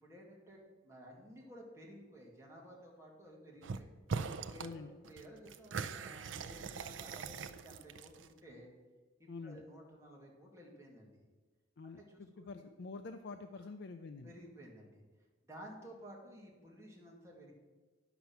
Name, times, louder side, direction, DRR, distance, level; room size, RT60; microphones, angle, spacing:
voice 1, 0.0-3.9 4.4-8.7 9.2-11.2 12.0-12.6 13.5-13.6 14.2-15.0 15.5-17.5, equal, 15° right, -3 dB, 2.2 m, -54 dB
sound 1, 3.6-3.8 4.1-4.7 5.0-8.4, right 5 dB, 75° right, 0.5 m, -41 dB
voice 2, 4.6-4.9 9.3-9.6 11.8-14.3, left 3 dB, 60° left, 7 dB, 0.4 m, -47 dB
10.0 x 6.0 x 7.0 m, 1.3 s
head